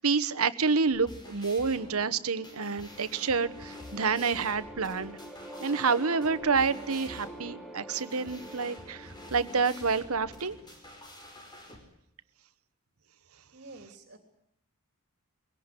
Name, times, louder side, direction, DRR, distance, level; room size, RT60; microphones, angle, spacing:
voice 1, 0.0-5.2 5.6-10.5, right 5 dB, 70° right, 13 dB, 1.1 m, -28 dB
sound 1, 0.8-11.8, left 1 dB, 20° left, 5.2 m, -49 dB
sound 2, 2.1-11.1, equal, ahead, 2.2 m, -46 dB
voice 2, 13.5-14.2, right 2 dB, 55° right, 6 dB, 3.4 m, -48 dB
23.0 x 17.5 x 9.8 m, 0.75 s
head